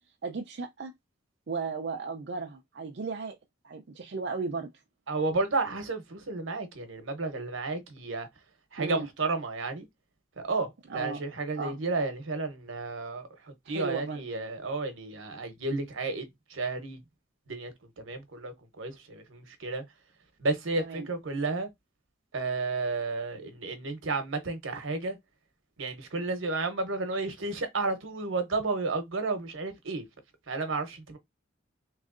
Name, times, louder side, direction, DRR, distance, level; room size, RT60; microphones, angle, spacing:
voice 1, 0.2-0.9 1.5-3.4 3.6-4.7 8.8-9.1 10.9-11.2 11.6-11.8 13.7-14.2 20.8-21.1, right 4 dB, 60° right, 0.5 m, -35 dB
voice 2, 5.1-8.3 8.7-9.9 10.4-17.0 17.5-19.8 20.4-21.7 22.3-25.2 25.8-30.0 30.5-31.2, right 3 dB, 90° right, 0.9 m, -32 dB
3.5 x 3.1 x 2.5 m
head